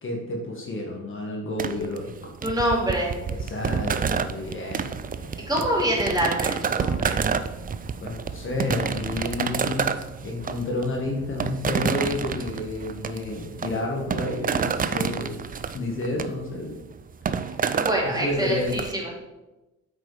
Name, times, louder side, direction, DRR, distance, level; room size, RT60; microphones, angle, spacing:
voice 1, 0.0-2.3 3.3-5.4 8.0-9.9 10.2-15.4 15.7-16.8 18.0-18.8, left 2 dB, 40° left, 0 dB, 1.6 m, -30 dB
sound 1, 1.6-18.9, right 6 dB, 30° right, 0.4 m, -29 dB
voice 2, 2.4-3.2 5.5-7.2 17.7-19.1, right 1 dB, 15° right, -4 dB, 2.7 m, -25 dB
8.2 x 4.7 x 4.8 m, 1.0 s
cardioid pair, 90°, 30 cm